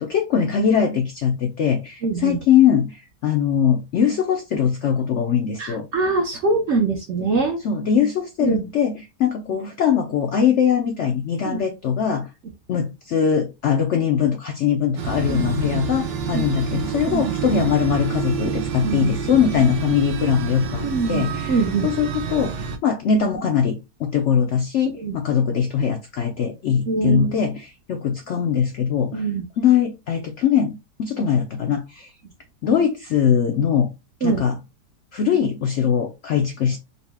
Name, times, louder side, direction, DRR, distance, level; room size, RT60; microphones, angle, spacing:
voice 1, 0.0-5.9 7.6-12.3 12.7-29.3 29.6-32.1 32.6-33.9 34.2-34.6 35.1-36.8, left 7 dB, 80° left, 0.6 m, -21 dB
voice 2, 2.0-2.4 5.6-7.6 8.4-8.6 11.4-11.6 15.3-15.5 16.3-16.4 17.1-17.4 18.8-19.2 20.8-21.9 25.0-25.1 26.9-27.4 29.1-29.4 34.2-34.4, right 4 dB, 60° right, 0.7 m, -23 dB
sound 1, 15.0-22.8, right 7 dB, 85° right, 1.3 m, -28 dB
4.0 x 2.1 x 3.3 m
omnidirectional pair, 1.8 m